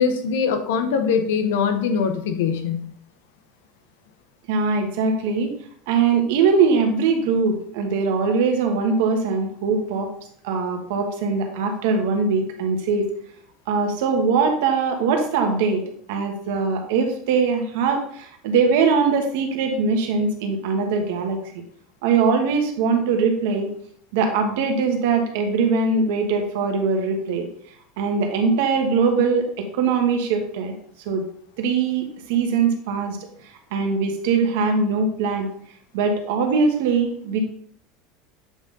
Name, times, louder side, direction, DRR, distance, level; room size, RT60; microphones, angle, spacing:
voice 1, 0.0-2.9, left 6 dB, 85° left, 7 dB, 1.0 m, -22 dB
voice 2, 4.5-5.5 5.9-10.1 10.4-13.1 13.7-21.4 22.0-23.7 24.1-27.5 28.0-30.7 31.0-31.2 31.6-33.3 33.7-35.5 35.9-37.4, right 5 dB, 80° right, 4 dB, 1.3 m, -21 dB
7.9 x 3.7 x 3.9 m, 0.63 s
supercardioid pair, 125°, 0 cm